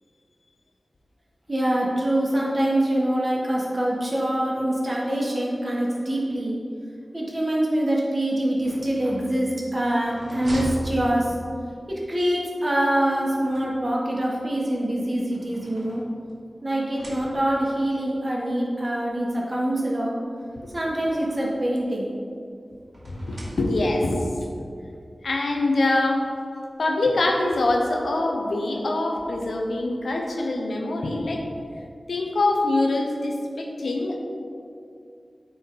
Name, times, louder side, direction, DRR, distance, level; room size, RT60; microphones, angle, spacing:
voice 1, 1.5-6.6 7.1-11.3 11.9-16.0 16.6-20.1 20.7-22.1, right 1 dB, 40° right, -4 dB, 1.7 m, -24 dB
sound 1, 8.5-11.7 13.0-14.2 15.0-16.4 16.8-17.7 18.7-18.8 19.1-19.2 20.4-21.7 22.9-24.1, right 1 dB, 65° right, 1.6 m, -39 dB
voice 2, 23.1-24.2 25.2-26.3 26.8-31.4 32.1-34.2, left 2 dB, 90° left, 1 dB, 0.8 m, -24 dB
9.0 x 4.4 x 3.9 m, 2.5 s
cardioid pair, 40°, 0 cm